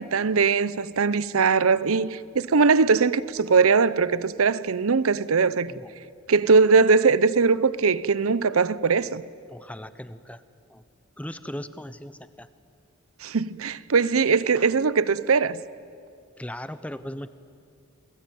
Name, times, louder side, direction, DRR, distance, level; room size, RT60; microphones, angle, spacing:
voice 1, 0.0-5.7 6.3-9.2 13.2-15.6, right 4 dB, 85° right, 0.7 m, -21 dB
voice 2, 9.5-10.4 10.7-10.8 11.2-12.5 16.4-17.3, equal, 5° left, 0.8 m, -38 dB
28.5 x 21.5 x 9.3 m
head